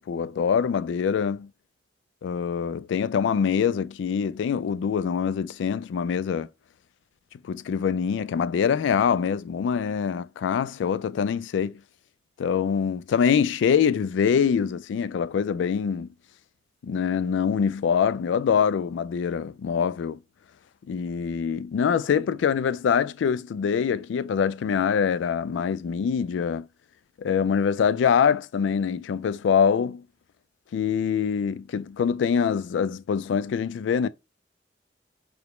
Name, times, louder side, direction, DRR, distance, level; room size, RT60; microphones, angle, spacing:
voice 1, 0.1-1.5 2.2-6.5 7.4-11.8 12.4-16.1 16.8-20.2 20.9-26.7 27.2-30.0 30.7-34.1, left 7 dB, 85° left, 0.3 m, -24 dB
4.8 x 2.0 x 3.1 m
head